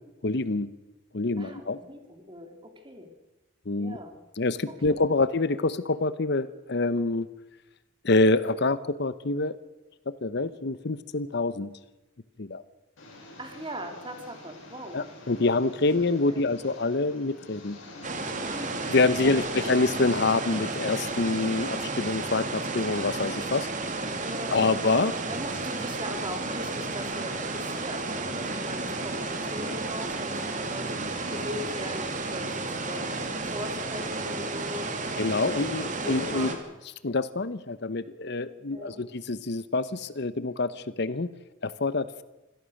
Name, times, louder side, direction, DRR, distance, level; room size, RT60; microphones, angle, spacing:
voice 1, 0.2-0.7 1.1-1.8 3.7-4.0 4.4-7.3 8.0-9.6 10.1-11.7 12.4-12.6 14.9-17.8 18.9-23.7 24.5-25.2 35.2-36.6 37.0-41.3 41.6-42.2, left 3 dB, 60° left, 15 dB, 0.9 m, -26 dB
voice 2, 1.4-3.1 3.8-4.1 4.7-5.0 13.4-15.0 16.3-16.4 18.4-18.8 19.2-19.5 24.2-24.7 25.3-31.0 31.3-33.2 33.4-35.6 36.0-36.7 38.7-39.0, equal, 25° right, 5 dB, 3.1 m, -40 dB
Engine, 13.0-21.6, left 1 dB, 90° left, 7.6 m, -47 dB
sound 1, 18.0-36.5, right 3 dB, 40° right, 2.6 m, -32 dB
25.5 x 17.5 x 6.5 m, 1.0 s
head